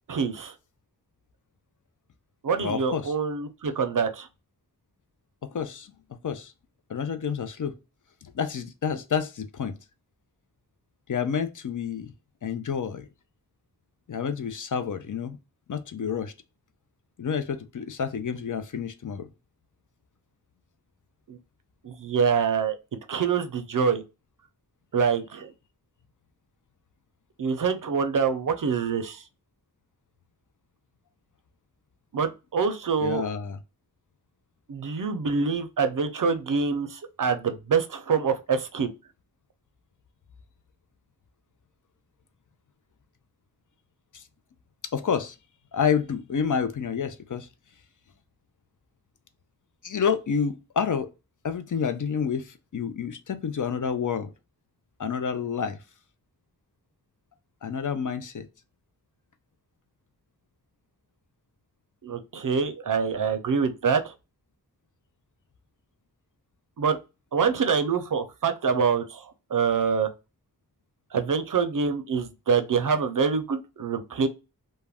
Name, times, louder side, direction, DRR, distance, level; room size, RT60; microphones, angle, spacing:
voice 1, 0.1-0.5 2.4-4.3 21.3-21.4 21.8-22.7 23.1-24.0 24.9-25.5 27.4-29.2 32.1-33.2 34.7-38.9 62.0-64.1 66.8-67.0 67.3-70.1 71.1-74.3, right 5 dB, 55° right, 0.5 m, -25 dB
voice 2, 2.6-3.1 5.5-5.9 6.2-6.5 6.9-7.7 8.2-9.8 11.1-12.1 12.4-13.1 14.1-15.4 15.7-16.3 17.2-19.3 33.0-33.6 44.1-44.2 44.9-45.4 45.7-47.5 49.8-51.1 51.4-54.3 55.0-55.8 57.6-58.5, left 7 dB, 50° left, 0.4 m, -29 dB
2.3 x 2.1 x 3.3 m
wide cardioid pair, 45°, 39 cm